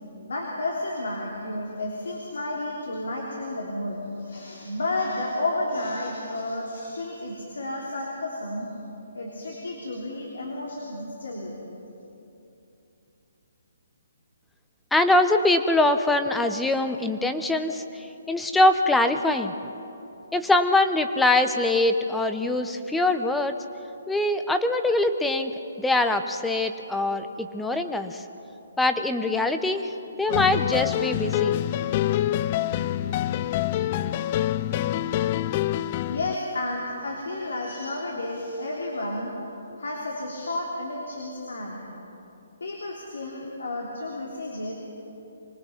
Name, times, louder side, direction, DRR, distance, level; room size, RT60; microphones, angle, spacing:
voice 1, 0.3-8.7 9.1-11.6 36.0-39.3 39.8-41.8 42.6-44.7, left 2 dB, 85° left, -2 dB, 3.3 m, -31 dB
voice 2, 14.9-19.5 20.3-23.5 24.1-25.5 25.8-28.2 28.8-29.9 30.2-31.6, left 2 dB, 5° left, 8 dB, 0.8 m, -23 dB
sound 1, 30.3-36.4, left 12 dB, 35° left, 0.4 m, -26 dB
24.5 x 19.0 x 5.8 m, 3.0 s
hypercardioid pair, 150°, 0 cm